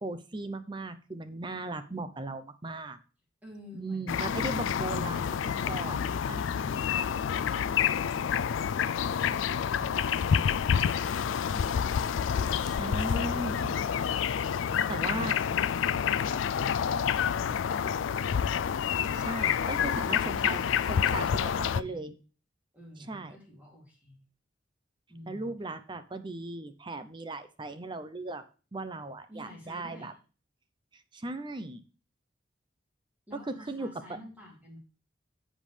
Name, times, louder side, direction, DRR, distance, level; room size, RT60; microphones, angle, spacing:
voice 1, 0.0-3.0 3.7-6.4 12.6-13.7 14.9-15.4 19.1-22.1 23.1-23.3 25.3-28.4 28.7-30.1 30.9-31.8 33.5-34.2, right 2 dB, 25° right, 11 dB, 0.6 m, -37 dB
voice 2, 3.4-5.1 20.8-22.0 22.7-24.2 25.1-25.5 29.3-30.1 33.3-34.8, left 1 dB, 10° right, -3 dB, 2.8 m, -51 dB
sound 1, 4.1-21.8, left 8 dB, 85° left, 0.4 m, -28 dB
10.5 x 7.5 x 3.3 m, 0.36 s
head